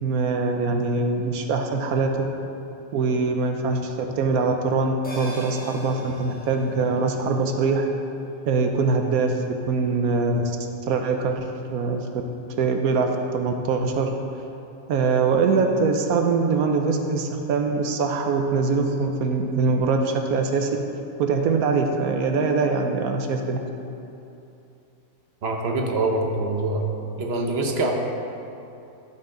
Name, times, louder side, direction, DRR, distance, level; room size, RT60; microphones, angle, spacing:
voice 1, 0.0-2.2 2.9-7.9 8.5-9.3 9.7-10.6 10.9-12.0 12.6-14.1 14.9-20.7 21.2-23.6, right 4 dB, 80° right, 4 dB, 1.2 m, -23 dB
sound 1, 5.0-9.8 10.1-10.2, left 1 dB, 5° left, 1.3 m, -43 dB
voice 2, 25.4-26.9 27.2-27.9, right 2 dB, 50° right, 1 dB, 1.1 m, -24 dB
12.5 x 5.7 x 3.8 m, 2.7 s
omnidirectional pair, 1.5 m